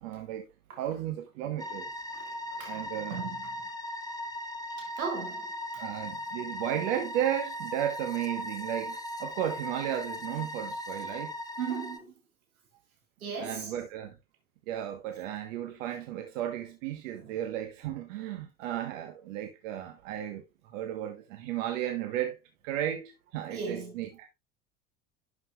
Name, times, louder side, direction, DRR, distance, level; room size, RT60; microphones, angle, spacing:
voice 1, 0.0-0.4 0.8-1.9 2.7-3.3 5.7-11.3 13.4-14.2 14.7-22.4 22.6-24.3, right 11 dB, 65° right, 1.3 m, -34 dB
sound 1, 1.6-12.0, left 1 dB, 10° left, 1.1 m, -38 dB
voice 2, 2.1-3.5 4.8-5.8 11.6-12.1 13.2-13.7 17.2-17.4 23.5-24.1, right 5 dB, 80° right, 1.9 m, -38 dB
11.0 x 6.0 x 2.3 m
figure-of-eight pair, 75°, 42 cm